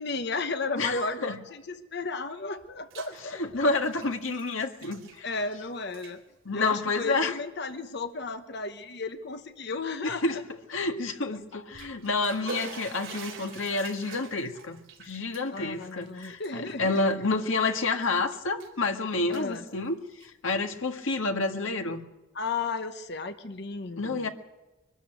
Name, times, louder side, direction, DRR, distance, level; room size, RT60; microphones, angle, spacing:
voice 1, 0.0-1.2 1.5-3.4 5.2-6.2 6.5-10.4 15.5-17.0 19.3-19.6 22.3-24.3, left 3 dB, 50° left, 9 dB, 1.0 m, -34 dB
voice 2, 0.8-1.4 3.3-5.3 6.5-7.4 10.0-10.4 10.7-22.0 24.0-24.3, left 3 dB, 70° left, 5 dB, 1.8 m, -29 dB
Bathtub (filling or washing), 2.6-3.2 3.5-5.6 5.8-6.1 6.9-7.0 7.7-7.8 8.2-8.3 11.5-17.6 18.0-18.8 19.1-20.5, right 4 dB, 70° right, 4.1 m, -44 dB
23.0 x 13.0 x 9.1 m, 1.1 s
head